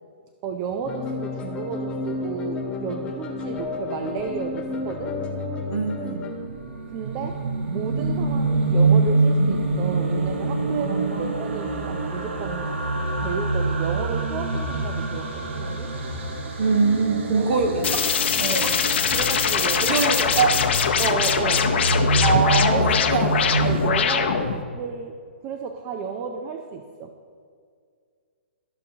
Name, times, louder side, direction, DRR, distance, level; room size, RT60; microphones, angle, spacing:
voice 1, 0.4-5.2 6.9-7.4 7.7-12.7 13.2-15.9 17.3-17.5 18.6-18.8 19.1-20.0 21.0-21.7 22.3-23.0 23.6-25.2 25.4-27.1, right 6 dB, 25° right, 5 dB, 0.4 m, -32 dB
sound 1, 0.8-6.3, left 3 dB, 15° left, 0.7 m, -31 dB
voice 2, 5.7-6.3 10.9-11.3 16.6-17.9 18.4-18.7 19.6-20.5 22.2-23.5, right 4 dB, 50° right, 4 dB, 1.2 m, -23 dB
sound 2, 5.9-23.9, right 2 dB, 75° right, 1.2 m, -25 dB
sound 3, 17.8-24.6, left 7 dB, 65° left, 0.7 m, -22 dB
13.0 x 6.2 x 2.8 m, 2.1 s
hypercardioid pair, 155°, 7 cm